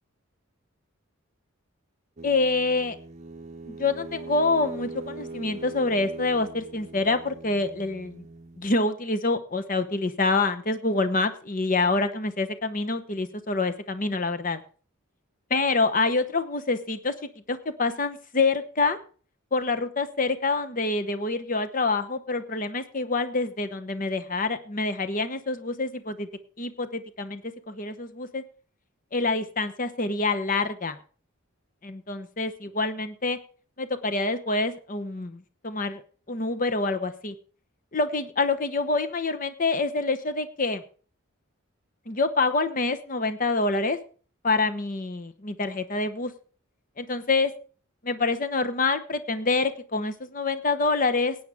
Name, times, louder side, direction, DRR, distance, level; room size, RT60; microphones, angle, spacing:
voice 1, 2.2-3.0 3.7-8.2 8.6-14.6 15.5-17.1 17.5-19.0 19.5-26.3 26.6-27.4 27.7-28.4 29.1-31.0 31.8-33.4 33.8-36.0 36.3-37.3 37.9-40.8 42.1-44.0 44.4-46.3 47.0-47.5 48.0-51.4, left 3 dB, 40° left, 10 dB, 0.9 m, -26 dB
sound 1, 2.2-8.7, right 3 dB, 35° right, 0.8 m, -41 dB
18.0 x 8.8 x 3.5 m, 0.40 s
head